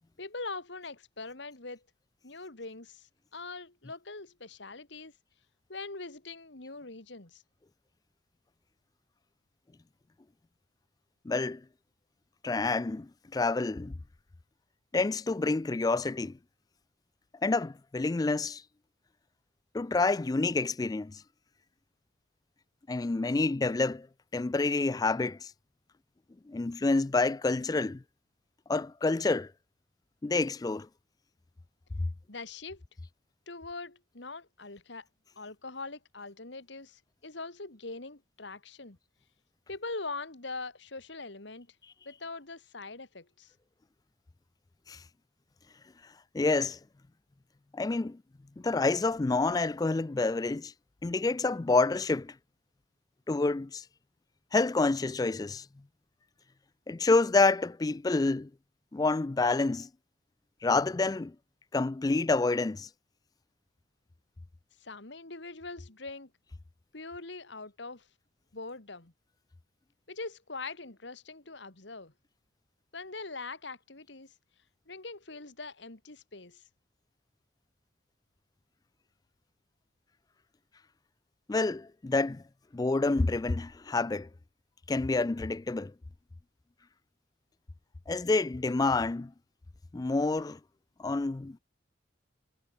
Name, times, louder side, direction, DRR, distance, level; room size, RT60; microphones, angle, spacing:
voice 1, 0.2-1.8 2.2-5.1 5.7-7.4 32.3-32.8 33.5-35.1 35.4-39.0 39.7-41.8 42.1-43.5 64.8-66.3 66.9-68.1 68.5-69.1 70.1-72.1 72.9-74.3 74.9-76.6, left 3 dB, 65° left, 2.2 m, -42 dB
voice 2, 11.3-11.6 12.4-13.9 14.9-16.4 17.4-18.6 19.7-21.2 22.9-24.1 24.3-25.5 26.5-28.0 28.7-29.5 30.2-30.9 44.9-45.0 46.3-46.8 47.7-48.2 48.6-50.7 51.0-52.3 53.3-53.8 54.5-55.6 56.9-58.5 58.9-59.9 60.6-61.3 61.7-62.9 81.5-82.4 82.7-84.3 84.9-85.9 88.1-89.3 89.9-90.6 91.0-91.6, left 3 dB, 20° left, 0.3 m, -28 dB
head